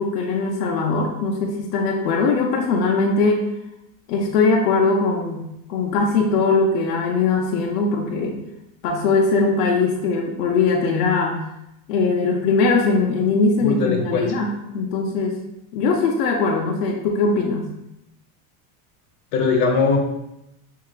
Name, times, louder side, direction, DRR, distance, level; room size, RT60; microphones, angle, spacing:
voice 1, 0.0-3.4 4.1-8.4 8.8-11.4 11.9-15.4 15.7-17.7, left 4 dB, 85° left, 0 dB, 0.9 m, -20 dB
voice 2, 13.6-14.2 19.3-20.0, left 4 dB, 55° left, 2 dB, 1.1 m, -20 dB
6.6 x 2.8 x 2.4 m, 0.86 s
supercardioid pair, 140°, 45 cm